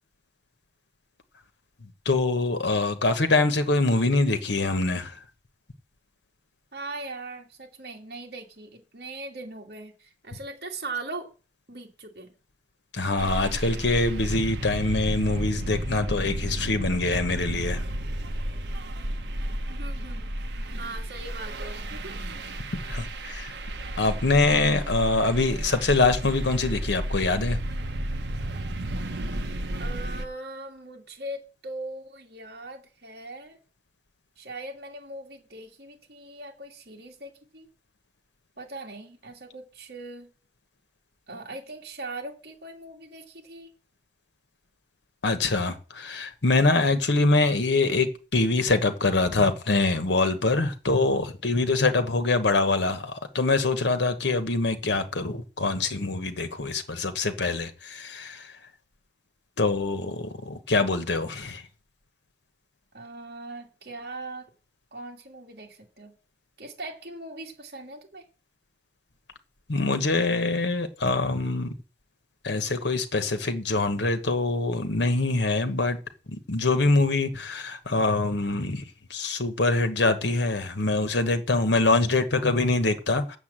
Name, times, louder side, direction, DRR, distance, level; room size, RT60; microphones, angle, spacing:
voice 1, 2.0-5.2 12.9-17.8 22.7-23.5 24.0-27.6 45.2-58.5 59.6-61.6 69.7-71.7 72.4-76.0 76.3-78.8 79.1-83.4, left 3 dB, 90° left, 1.2 m, -24 dB
voice 2, 6.7-11.3 11.7-12.3 19.7-22.2 29.8-33.6 34.4-37.7 38.6-40.3 41.3-43.7 62.9-64.5 64.9-66.1 66.6-68.2, right 2 dB, 65° right, 2.7 m, -40 dB
sound 1, 13.2-30.2, right 1 dB, 85° right, 1.1 m, -32 dB
8.3 x 7.2 x 7.4 m
head